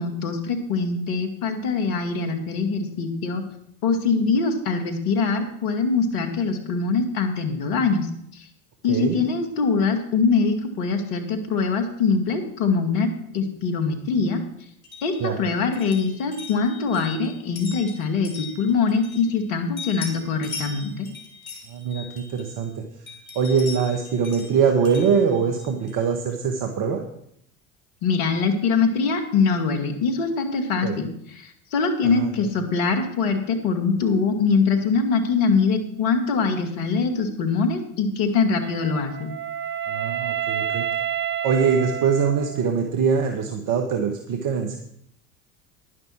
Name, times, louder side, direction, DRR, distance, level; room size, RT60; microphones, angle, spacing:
voice 1, 0.0-3.4 3.8-8.5 8.8-13.1 13.3-14.4 15.0-21.1 28.0-39.3, left 4 dB, 65° left, 6 dB, 2.2 m, -23 dB
voice 2, 8.9-9.2 15.2-15.4 21.7-22.8 23.3-27.0 30.8-31.0 32.0-32.3 39.9-40.8 41.4-44.8, right 6 dB, 50° right, 4 dB, 1.5 m, -23 dB
sound 1, 14.8-19.5 19.8-22.7 23.1-26.1, left 4 dB, 85° left, 3.3 m, -40 dB
Wind instrument woodwind instrument, 38.6-42.8, right 9 dB, 30° right, 0.7 m, -29 dB
11.0 x 11.0 x 4.5 m, 0.72 s
hypercardioid pair, 75°, 40 cm